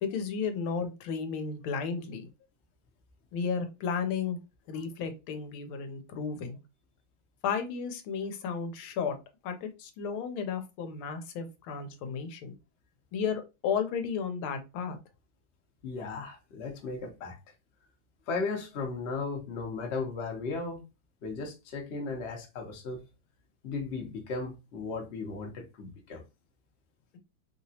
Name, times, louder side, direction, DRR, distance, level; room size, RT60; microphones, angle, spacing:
voice 1, 0.0-2.3 3.3-4.4 4.7-6.6 7.4-9.2 9.4-12.6 13.1-15.0, left 6 dB, 85° left, 1.5 m, -33 dB
voice 2, 15.8-17.4 18.3-20.8 21.2-23.0 23.6-26.2, left 4 dB, 50° left, 0.8 m, -36 dB
3.5 x 2.9 x 2.7 m
omnidirectional pair, 2.2 m